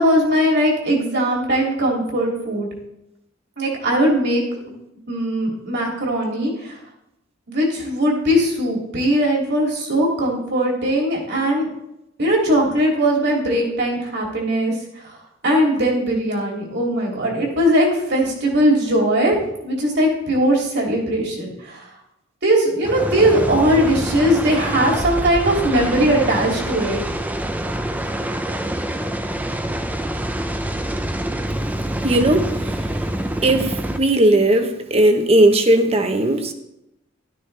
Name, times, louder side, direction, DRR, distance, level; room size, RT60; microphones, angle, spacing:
voice 1, 0.0-2.7 3.6-4.4 5.1-6.7 7.5-11.7 12.2-14.7 15.0-15.2 15.4-19.3 19.6-21.9 22.4-27.0, equal, 55° right, -1 dB, 2.8 m, -19 dB
sound 1, 22.8-34.0, right 1 dB, 10° right, 0.6 m, -26 dB
voice 2, 32.0-32.5 33.4-36.5, right 1 dB, 30° right, 7 dB, 1.0 m, -17 dB
13.0 x 12.0 x 3.4 m, 0.85 s
head